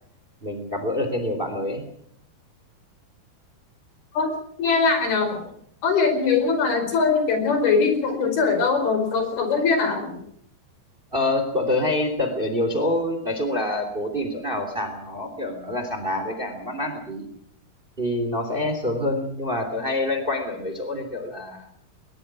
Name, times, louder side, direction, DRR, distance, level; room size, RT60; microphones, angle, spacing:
voice 1, 0.4-1.8 11.1-17.3 18.0-21.7, left 1 dB, 15° right, 7 dB, 2.9 m, -26 dB
voice 2, 4.6-5.4 5.8-10.2, left 4 dB, 70° left, 7 dB, 6.6 m, -21 dB
21.5 x 21.0 x 6.2 m, 0.67 s
omnidirectional pair, 4.6 m